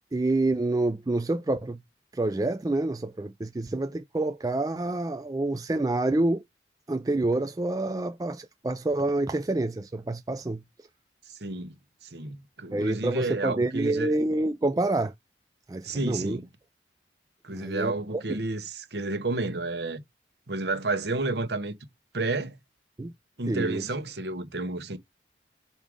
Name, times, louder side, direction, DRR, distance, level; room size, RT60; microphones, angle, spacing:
voice 1, 0.1-1.8 2.1-6.4 6.9-10.6 12.7-15.1 15.7-16.4 17.5-17.9 23.0-23.1 23.5-23.8, right 2 dB, 20° right, 0.3 m, -27 dB
voice 2, 11.4-11.7 12.1-14.1 15.8-16.4 17.4-20.0 20.5-21.8 22.1-22.5 23.4-25.0, right 2 dB, 60° right, 1.0 m, -31 dB
5.4 x 4.7 x 3.7 m
head